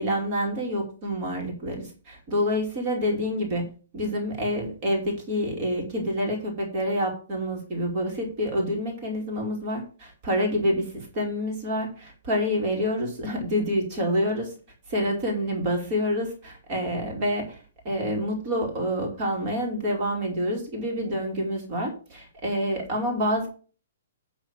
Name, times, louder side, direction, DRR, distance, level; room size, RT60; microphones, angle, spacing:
voice 1, 0.0-3.7 3.9-14.5 14.9-17.6 17.8-23.5, equal, 30° right, 0 dB, 2.7 m, -27 dB
10.0 x 3.8 x 7.2 m, 0.37 s
hypercardioid pair, 170°, 0 cm